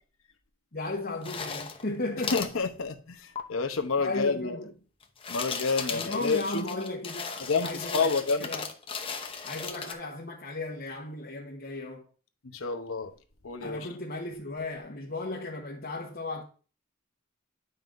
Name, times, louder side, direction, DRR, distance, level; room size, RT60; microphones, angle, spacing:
voice 1, 0.7-2.5 4.0-4.7 5.9-8.1 8.4-8.7 9.4-12.1 13.6-16.4, left 2 dB, 50° left, 1.1 m, -35 dB
sound 1, 1.2-1.9 2.2-2.5 3.4-3.5 5.0-9.9, left 5 dB, 25° left, 0.8 m, -36 dB
voice 2, 2.3-4.6 5.3-6.6 7.5-8.5 9.3-9.4 12.5-13.1 13.4-13.9, left 4 dB, 85° left, 0.9 m, -29 dB
9.3 x 5.4 x 2.6 m
head